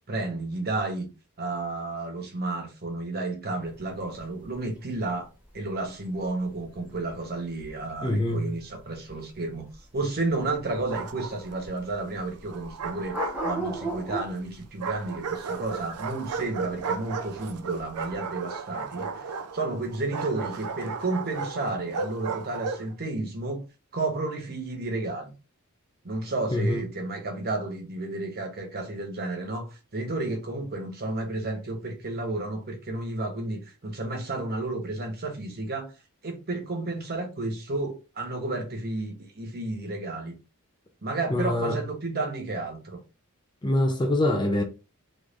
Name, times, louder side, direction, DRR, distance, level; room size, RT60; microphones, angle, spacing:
voice 1, 0.1-1.1 1.4-5.3 5.5-9.7 9.9-19.3 19.5-23.6 23.9-25.3 26.0-36.0 36.2-40.4 41.0-43.0, right 2 dB, 45° right, 1.0 m, -32 dB
sound 1, 3.6-18.2, right 1 dB, 5° right, 1.1 m, -38 dB
voice 2, 8.0-8.5 26.5-26.8 41.3-41.8 43.6-44.6, left 1 dB, 20° left, 0.5 m, -24 dB
Bark, 10.7-11.6 12.5-14.1 14.8-22.9, right 5 dB, 85° right, 0.5 m, -35 dB
3.7 x 3.1 x 2.5 m
head